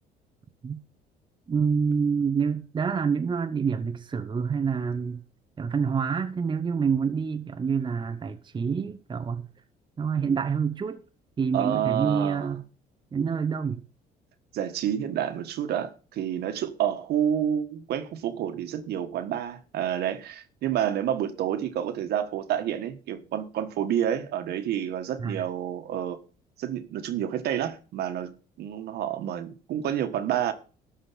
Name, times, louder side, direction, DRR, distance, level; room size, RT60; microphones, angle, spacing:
voice 1, 1.5-5.2 5.6-9.5 10.0-11.0 11.4-12.6 13.1-13.8 25.2-25.4, right 6 dB, 30° right, 0.9 m, -27 dB
voice 2, 11.5-12.5 14.5-26.2 26.6-30.5, right 10 dB, 70° right, 1.5 m, -29 dB
12.5 x 5.1 x 7.6 m
cardioid pair, 110°, 17 cm